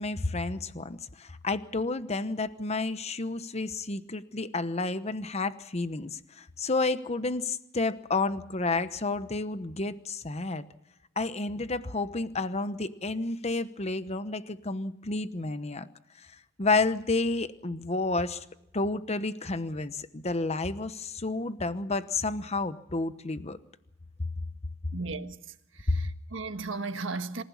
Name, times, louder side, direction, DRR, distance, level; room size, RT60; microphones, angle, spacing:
voice 1, 0.0-10.6 11.2-15.9 16.6-18.4 18.7-23.6 25.9-26.0, left 3 dB, 35° left, 1.0 m, -30 dB
voice 2, 24.9-25.4 25.8-27.4, right 3 dB, 70° right, 1.5 m, -35 dB
27.0 x 15.5 x 7.2 m
head